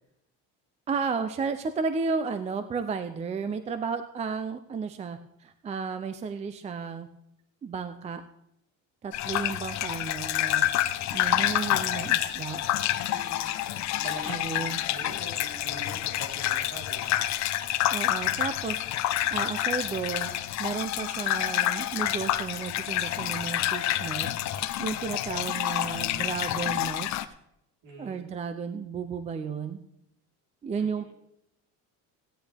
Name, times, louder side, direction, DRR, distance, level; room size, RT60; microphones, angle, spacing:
voice 1, 0.9-7.1 7.6-8.2 9.0-10.6 11.1-12.6 14.3-14.8 17.9-20.3 20.6-27.1 28.0-29.8 30.6-31.1, right 5 dB, 20° right, 10 dB, 0.5 m, -33 dB
sound 1, 9.1-27.2, left 13 dB, 50° left, 0.7 m, -28 dB
voice 2, 13.1-13.6 13.9-17.8 27.8-28.2 30.8-31.1, right 2 dB, 60° right, 0 dB, 3.7 m, -44 dB
16.0 x 10.0 x 3.4 m, 0.78 s
cardioid pair, 155°, 36 cm